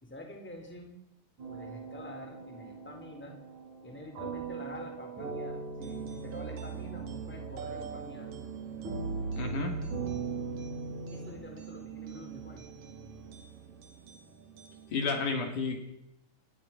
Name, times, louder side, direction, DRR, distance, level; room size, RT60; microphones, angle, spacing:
voice 1, 0.0-1.0 1.5-3.4 3.8-8.4 11.1-12.6, left 1 dB, 5° left, 3 dB, 3.9 m, -47 dB
sound 1, 1.4-11.3, right 4 dB, 55° right, 8.3 m, -40 dB
sound 2, 5.8-15.0, right 8 dB, 75° right, 4.1 m, -44 dB
voice 2, 9.4-9.8 14.9-15.8, left 4 dB, 60° left, 4 dB, 4.4 m, -31 dB
28.0 x 20.0 x 6.2 m, 0.81 s
omnidirectional pair, 4.0 m